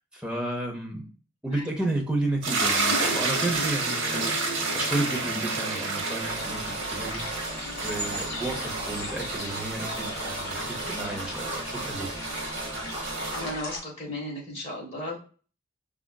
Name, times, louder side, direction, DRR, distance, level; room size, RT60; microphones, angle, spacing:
voice 1, 0.1-1.1 1.4-4.4 4.7-7.4 7.8-12.1, right 2 dB, 5° right, -1 dB, 0.7 m, -32 dB
sound 1, 2.4-13.5, right 3 dB, 60° right, 0.9 m, -30 dB
sound 2, 6.2-13.8, left 1 dB, 55° left, 1.7 m, -37 dB
voice 2, 13.3-15.2, left 1 dB, 30° left, -4 dB, 1.3 m, -35 dB
4.9 x 2.4 x 2.3 m, 0.39 s
head